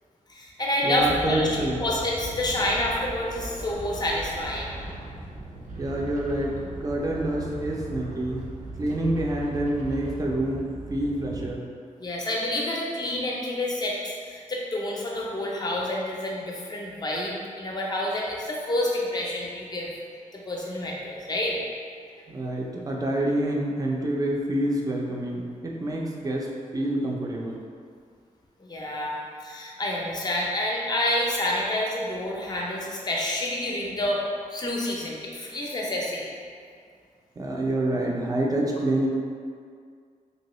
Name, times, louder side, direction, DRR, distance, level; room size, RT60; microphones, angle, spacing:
voice 1, 0.3-1.5 1.8-4.7 12.0-19.9 20.3-21.6 28.6-34.2 34.5-36.3, left 1 dB, 30° left, -3 dB, 0.5 m, -28 dB
voice 2, 0.8-1.8 5.8-8.5 8.8-11.7 22.3-27.6 37.4-39.1, right 1 dB, 25° right, -2 dB, 0.4 m, -27 dB
sound 1, 1.0-11.5, right 2 dB, 70° right, 0.6 m, -38 dB
3.0 x 2.8 x 3.0 m, 2.2 s
wide cardioid pair, 140°, 14 cm